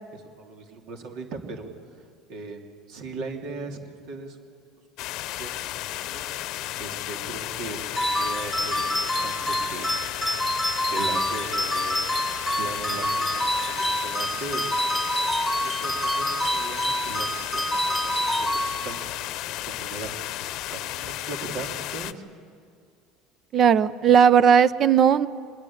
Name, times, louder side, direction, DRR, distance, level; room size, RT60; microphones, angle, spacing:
voice 1, 0.1-1.7 2.0-4.4 5.4-5.5 6.1-6.2 6.8-9.9 10.9-12.3 12.6-15.0 15.6-20.3 20.7-22.2, right 4 dB, 70° right, 3 dB, 3.0 m, -39 dB
sound 1, 5.0-22.1, left 15 dB, 65° left, 0.9 m, -33 dB
sound 2, 8.0-19.2, equal, ahead, 2.1 m, -27 dB
voice 2, 23.5-25.3, right 8 dB, 45° right, 15 dB, 0.9 m, -17 dB
24.0 x 20.5 x 8.8 m, 2.2 s
supercardioid pair, 105°, 0 cm